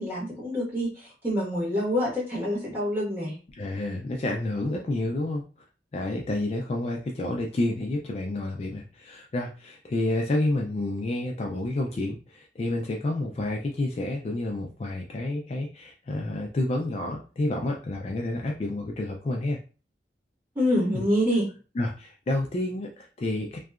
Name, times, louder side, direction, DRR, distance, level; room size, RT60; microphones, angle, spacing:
voice 1, 0.0-3.4 20.5-21.5, equal, 10° right, -7 dB, 1.4 m, -26 dB
voice 2, 3.5-5.4 5.9-19.6 20.9-21.0 21.8-23.6, left 2 dB, 35° left, 0 dB, 0.3 m, -29 dB
2.7 x 2.2 x 2.3 m, 0.35 s
head